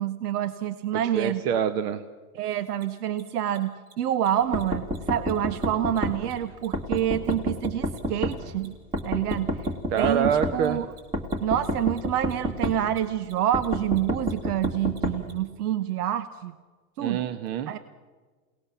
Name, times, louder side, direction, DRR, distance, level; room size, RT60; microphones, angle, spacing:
voice 1, 0.0-1.4 2.3-8.7 9.0-9.5 10.0-10.9 11.4-16.5 17.0-17.2 17.7-17.8, right 11 dB, 90° right, 12 dB, 1.2 m, -27 dB
voice 2, 0.9-2.0 9.9-10.8 17.0-17.7, right 8 dB, 45° right, 11 dB, 0.9 m, -26 dB
Mechanisms, 2.7-2.8 3.1-3.2 3.5-3.6 3.8-3.9 4.2-4.3 4.5-4.6 4.9-5.0 5.3-8.0 8.2-15.3, right 5 dB, 75° right, 7.5 m, -53 dB
sound 1, 4.5-6.2 6.7-8.4 8.9-10.6 11.1-12.8 13.5-15.2, equal, 10° right, 1.6 m, -28 dB
28.0 x 18.5 x 7.1 m, 1.4 s
supercardioid pair, 165°, 45 cm